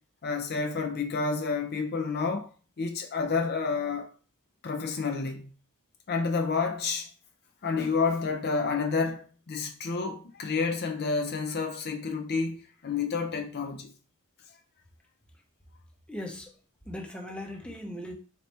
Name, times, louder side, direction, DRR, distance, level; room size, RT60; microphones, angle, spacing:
voice 1, 0.2-2.5 2.8-4.1 4.6-5.5 6.1-7.1 7.6-13.9, left 4 dB, 45° left, 0.5 m, -29 dB
voice 2, 16.1-16.5 16.9-18.1, left 1 dB, 5° left, 0.7 m, -38 dB
4.0 x 2.9 x 3.2 m
head